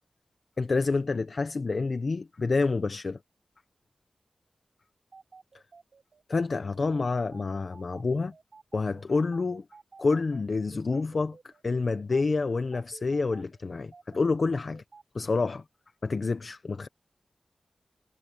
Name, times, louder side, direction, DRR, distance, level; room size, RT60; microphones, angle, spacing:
voice 1, 0.6-3.2 6.3-8.3 8.7-9.6 10.0-11.4 11.6-14.8 15.1-15.6 16.0-16.9, left 3 dB, 60° left, 0.8 m, -28 dB
sound 1, 5.1-15.0, right 4 dB, 70° right, 4.6 m, -52 dB
wide cardioid pair, 70°, 0 cm